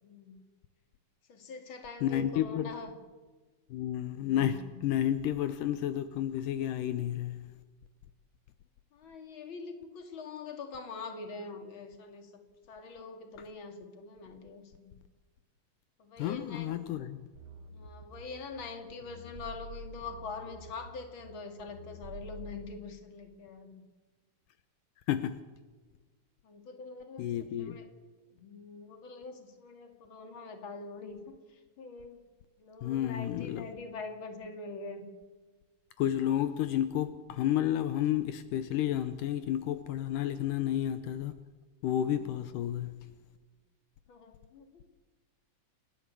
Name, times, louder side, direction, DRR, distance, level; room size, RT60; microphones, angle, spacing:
voice 1, 0.0-0.4 1.3-2.9 4.2-4.8 8.9-12.4 12.7-15.0 16.0-16.8 17.7-23.8 26.4-27.9 28.3-32.2 32.6-35.1 41.9-42.3 44.1-44.8, left 4 dB, 40° left, 2.9 m, -44 dB
voice 2, 2.0-2.7 3.7-7.4 16.2-17.2 25.1-25.4 27.2-27.8 32.8-33.7 36.0-41.3 41.8-43.0, left 11 dB, 80° left, 2.4 m, -31 dB
sound 1, 17.4-22.7, right 1 dB, 45° right, 2.5 m, -48 dB
29.0 x 11.5 x 8.3 m
omnidirectional pair, 3.7 m